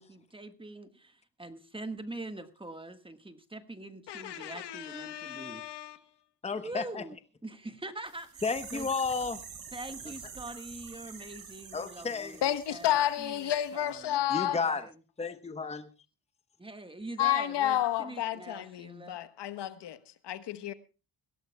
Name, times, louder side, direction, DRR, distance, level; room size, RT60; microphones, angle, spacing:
voice 1, 0.0-5.6 6.6-7.1 7.4-8.4 8.7-8.9 9.7-12.9 13.2-14.9 16.6-19.2, right 2 dB, 10° right, 1.5 m, -43 dB
voice 2, 4.1-6.0 12.4-14.6 17.2-20.7, left 12 dB, 70° left, 1.3 m, -31 dB
voice 3, 6.4-7.0 8.4-9.4 11.7-12.4 14.3-14.9 15.2-15.9, left 4 dB, 15° left, 1.0 m, -32 dB
sound 1, 8.0-13.7 13.9-14.0, right 6 dB, 50° right, 6.6 m, -47 dB
22.0 x 17.0 x 2.3 m
cardioid pair, 110°, 42 cm